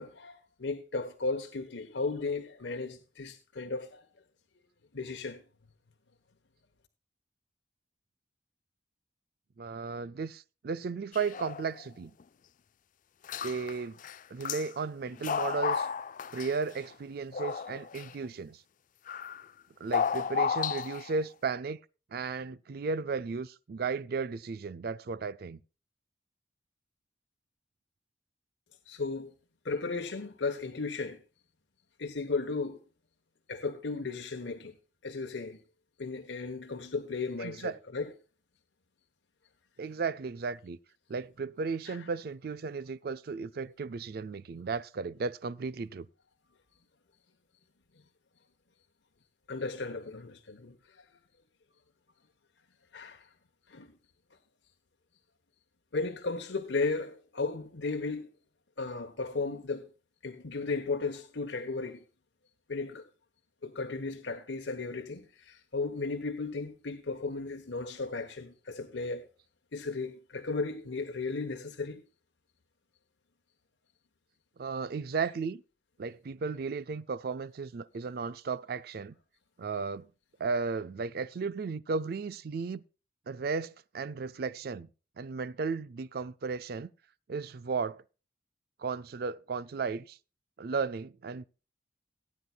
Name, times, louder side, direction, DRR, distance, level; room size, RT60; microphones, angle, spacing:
voice 1, 0.0-4.1 4.9-5.4 28.9-29.3 29.6-31.2 32.0-32.8 33.5-34.7 35.0-35.6 36.0-38.1 41.9-42.0 49.5-51.0 52.9-53.3 53.7-53.9 55.9-58.3 58.8-59.9 60.2-62.0 62.7-63.0 63.6-69.3 69.7-72.0, left 3 dB, 80° left, 1.1 m, -35 dB
voice 2, 9.6-12.1 13.4-14.0 14.3-15.9 16.3-18.6 19.8-21.8 22.1-25.6 37.4-37.8 39.8-40.8 41.1-46.1 74.6-75.6 76.0-79.1 79.6-80.1 80.4-82.8 83.3-84.9 85.2-86.9 87.3-88.0 88.8-90.2 90.6-91.4, right 4 dB, 55° right, 0.4 m, -35 dB
sound 1, 11.1-11.9 12.2-12.3 13.2-13.8 14.0-14.7 15.1-16.8 17.3-18.1 19.1-19.5 19.9-21.2, left 6 dB, 45° left, 0.4 m, -33 dB
17.5 x 9.7 x 2.3 m
head